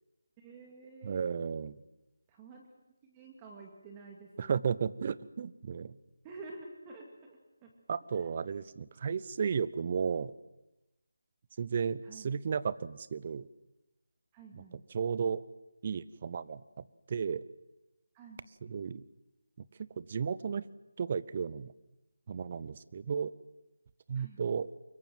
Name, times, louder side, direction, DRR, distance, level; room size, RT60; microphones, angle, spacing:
voice 1, 0.4-1.3 2.3-2.6 3.0-4.5 6.2-7.7 8.1-8.2 12.0-12.3 14.3-14.8 18.1-18.4 24.1-24.6, right 3 dB, 20° right, 1 dB, 2.3 m, -50 dB
voice 2, 1.0-1.8 4.4-6.0 7.9-10.3 11.6-13.5 14.5-14.6 14.9-15.4 15.8-17.4 18.6-19.0 19.8-20.6 21.0-21.7 22.3-23.3 24.1-24.7, right 6 dB, 35° right, 18 dB, 0.8 m, -34 dB
24.5 x 22.5 x 7.8 m, 0.97 s
figure-of-eight pair, 165°, 0 cm